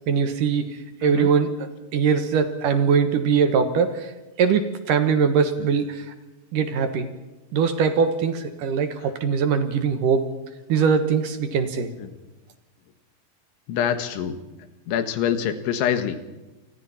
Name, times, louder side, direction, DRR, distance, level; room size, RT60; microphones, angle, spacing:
voice 1, 0.1-1.5 1.9-4.1 4.4-6.1 6.5-7.1 7.5-10.2 10.7-11.9, right 6 dB, 65° right, 8 dB, 2.3 m, -21 dB
voice 2, 13.7-14.4 14.9-16.2, left 9 dB, 80° left, 8 dB, 3.9 m, -25 dB
29.5 x 24.5 x 4.3 m, 1.1 s
omnidirectional pair, 5.4 m